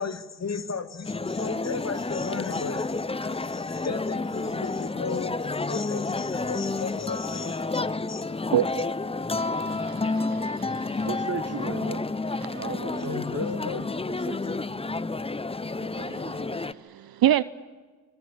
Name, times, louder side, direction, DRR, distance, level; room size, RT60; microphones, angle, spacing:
voice 1, 0.0-8.2 13.0-13.9, left 5 dB, 30° left, 11 dB, 2.4 m, -35 dB
sound 1, 1.1-16.7, left 3 dB, 10° left, 0.9 m, -30 dB
voice 2, 8.5-8.9 9.4-11.1 12.4-12.6 16.1-17.4, right 12 dB, 45° right, 17 dB, 0.8 m, -28 dB
voice 3, 11.0-12.1 12.5-14.6 15.8-16.5, right 5 dB, 30° right, 12 dB, 1.8 m, -37 dB
26.0 x 24.0 x 8.5 m, 1.5 s
supercardioid pair, 70°, 49 cm